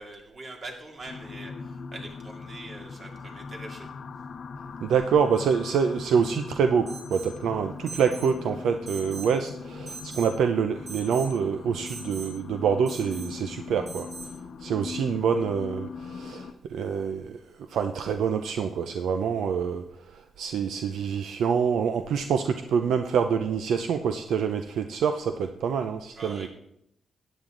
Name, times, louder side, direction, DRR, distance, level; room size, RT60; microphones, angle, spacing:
voice 1, 0.0-3.9 26.1-26.5, right 2 dB, 50° right, 1 dB, 2.6 m, -43 dB
sound 1, 1.1-16.5, left 5 dB, 55° left, 0.8 m, -40 dB
voice 2, 4.8-14.1 14.6-17.4 17.7-19.8 20.1-26.5, right 6 dB, 85° right, 7 dB, 0.6 m, -26 dB
Alarm, 6.9-7.3 7.9-8.3 8.9-9.3 9.9-10.3 10.9-11.3 11.9-12.3 12.9-13.3 13.9-14.3, right 3 dB, 65° right, 3.9 m, -41 dB
13.5 x 8.9 x 3.9 m, 0.77 s
cardioid pair, 85°, 0 cm